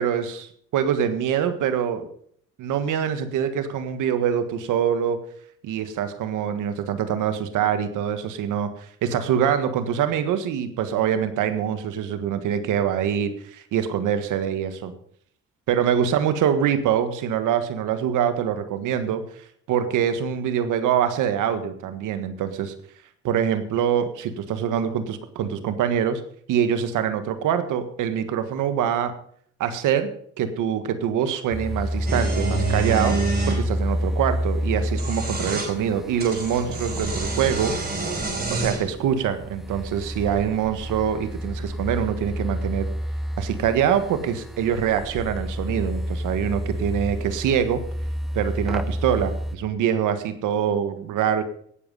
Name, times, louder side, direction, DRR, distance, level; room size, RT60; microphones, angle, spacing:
voice 1, 0.0-2.1 2.6-5.2 5.6-8.7 9.0-14.9 15.7-19.2 19.7-22.7 23.2-26.2 26.5-29.1 29.6-30.1 30.4-33.2 33.5-37.7 38.5-42.9 43.4-47.8 48.3-51.4, right 8 dB, 85° right, 9 dB, 1.6 m, -24 dB
sound 1, 31.5-49.6, equal, ahead, 0.7 m, -29 dB
sound 2, 32.1-33.6 34.8-35.7 36.2-38.9, right 4 dB, 30° right, 5.1 m, -28 dB
17.5 x 7.4 x 5.5 m, 0.62 s
cardioid pair, 90°, 30 cm